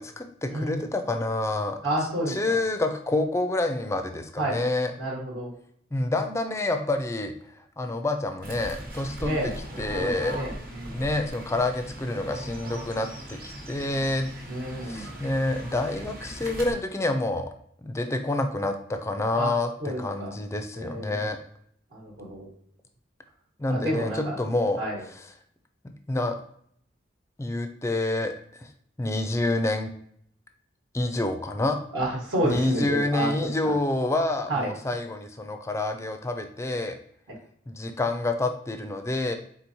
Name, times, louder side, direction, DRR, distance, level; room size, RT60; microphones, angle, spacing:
voice 1, 0.0-1.8 2.3-4.9 5.9-9.5 9.8-10.4 10.9-14.3 14.8-17.5 17.8-21.4 23.6-24.8 26.1-26.4 27.4-28.3 28.6-28.7 29.0-29.9 30.9-31.8 32.4-37.0 37.7-39.4, left 2 dB, 15° left, 6 dB, 0.4 m, -28 dB
voice 2, 0.5-0.8 1.8-2.6 4.4-4.6 5.0-5.5 9.2-9.5 9.9-11.1 14.5-15.2 19.3-19.5 19.8-20.3 20.8-21.2 21.9-22.5 23.7-24.4 24.8-25.0 31.9-33.3 33.6-33.7 34.5-34.7, right 1 dB, 70° right, -3 dB, 1.3 m, -30 dB
Fowl / Bird, 8.4-16.7, right 1 dB, 50° right, 1.1 m, -39 dB
4.4 x 3.9 x 2.7 m, 0.66 s
head